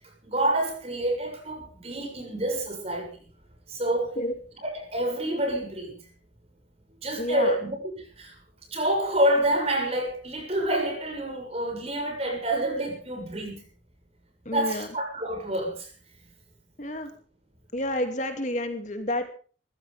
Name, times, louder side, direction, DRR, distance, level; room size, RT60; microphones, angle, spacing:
voice 1, 0.2-3.1 3.7-4.1 4.6-6.0 7.0-8.3 8.7-13.6 14.5-15.9, right 1 dB, 30° right, 3 dB, 6.9 m, -28 dB
voice 2, 7.2-7.5 14.5-14.9 16.8-17.1 17.7-19.2, left 1 dB, 40° left, 6 dB, 2.6 m, -29 dB
22.5 x 15.5 x 3.5 m, 0.40 s
head